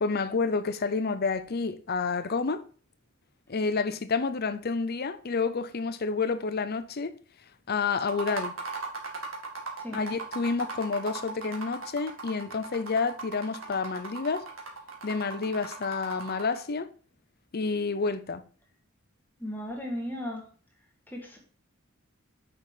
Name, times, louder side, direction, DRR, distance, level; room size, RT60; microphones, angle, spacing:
voice 1, 0.0-2.6 3.5-7.1 7.7-8.5 9.9-14.5 15.0-16.9 17.5-18.4, left 4 dB, 50° left, 0.7 m, -29 dB
sound 1, 8.0-16.6, right 4 dB, 90° right, 1.9 m, -38 dB
voice 2, 19.4-20.5 21.1-21.4, equal, 10° left, 1.6 m, -35 dB
6.3 x 5.6 x 4.9 m
head